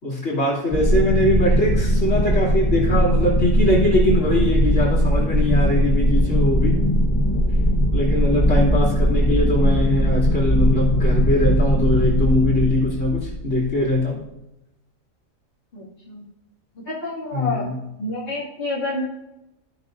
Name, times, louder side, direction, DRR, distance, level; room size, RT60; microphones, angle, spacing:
voice 1, 0.0-6.8 7.9-14.2 17.3-17.7, left 1 dB, 60° left, -6 dB, 3.2 m, -21 dB
sound 1, 0.7-14.0, equal, 5° left, 1.2 m, -20 dB
voice 2, 15.7-16.2 16.8-17.7 18.0-19.0, left 2 dB, 45° left, -11 dB, 2.6 m, -28 dB
16.5 x 6.0 x 2.6 m, 0.93 s
omnidirectional pair, 1.4 m